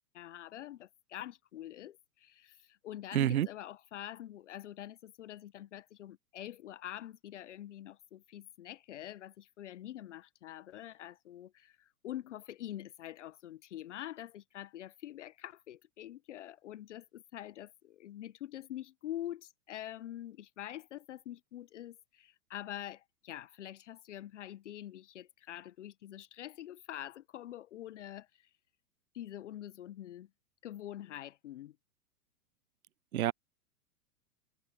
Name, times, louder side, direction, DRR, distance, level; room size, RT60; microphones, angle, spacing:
voice 1, 0.1-28.5 29.1-30.3 30.6-31.8, left 12 dB, 50° left, 1.3 m, -45 dB
voice 2, 3.1-3.5 33.1-33.3, right 12 dB, 70° right, 0.6 m, -28 dB
figure-of-eight pair, 105°, 45 cm